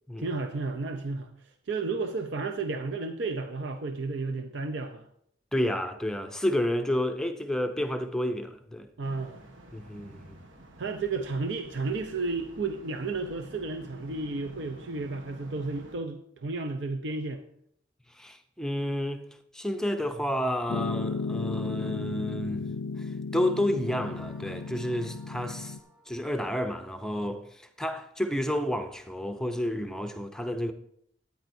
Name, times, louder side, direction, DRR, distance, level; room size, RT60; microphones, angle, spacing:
voice 1, 0.2-1.3 1.7-5.0 9.0-9.4 10.8-17.4, right 3 dB, 70° right, 0.6 m, -32 dB
voice 2, 5.5-8.9 9.7-10.4 18.1-19.3 19.5-22.7 23.0-25.8 26.1-30.7, left 1 dB, 5° left, 0.5 m, -30 dB
sound 1, 9.0-15.9, right 1 dB, 90° right, 1.2 m, -50 dB
Piano, 20.7-25.8, left 4 dB, 85° left, 0.4 m, -34 dB
sound 2, 23.8-27.2, right 1 dB, 30° right, 4.1 m, -55 dB
13.5 x 9.2 x 2.7 m
head